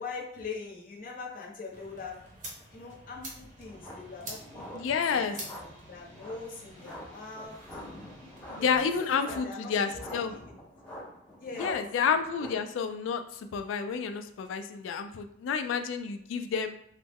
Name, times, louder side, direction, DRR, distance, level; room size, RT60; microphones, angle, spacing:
voice 1, 0.0-2.2 2.7-4.6 5.1-7.6 8.5-10.0 10.3-10.5 11.4-11.9 12.4-12.6, left 4 dB, 45° left, -3 dB, 0.8 m, -42 dB
sound 1, 1.7-9.2, right 1 dB, 40° right, 0.8 m, -48 dB
sound 2, 3.7-12.5, left 1 dB, 5° left, 0.7 m, -46 dB
voice 2, 4.7-5.3 8.5-10.3 11.6-16.8, left 6 dB, 80° left, 8 dB, 0.3 m, -30 dB
3.2 x 2.1 x 3.4 m, 0.71 s
head